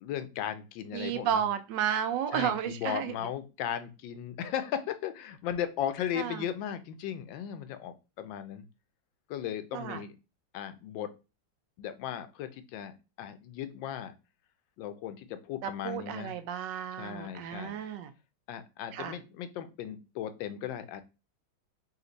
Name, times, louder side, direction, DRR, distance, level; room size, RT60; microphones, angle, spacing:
voice 1, 0.0-1.4 2.3-8.6 9.3-10.1 10.5-11.1 11.8-14.1 14.8-16.3 17.0-17.8 18.5-21.0, left 10 dB, 85° left, 10 dB, 1.3 m, -36 dB
voice 2, 0.9-3.1 6.2-6.4 9.7-10.0 15.6-18.1 18.9-19.2, right 9 dB, 75° right, 9 dB, 1.2 m, -32 dB
4.3 x 2.5 x 3.9 m, 0.29 s
omnidirectional pair, 2.0 m